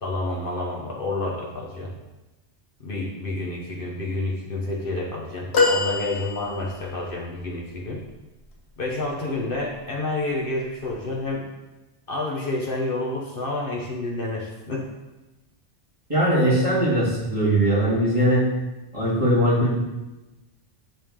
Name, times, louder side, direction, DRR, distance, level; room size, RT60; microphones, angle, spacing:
voice 1, 0.0-1.9 2.8-8.0 8.8-11.5 12.1-14.9, left 2 dB, 55° left, -1 dB, 1.1 m, -29 dB
sound 1, 5.5-7.0 9.3-9.5 10.8-10.9, left 3 dB, 75° left, 1.4 m, -24 dB
voice 2, 16.1-18.4 18.9-19.8, right 1 dB, 30° right, -8 dB, 2.3 m, -20 dB
10.5 x 3.6 x 3.7 m, 1.1 s
omnidirectional pair, 1.1 m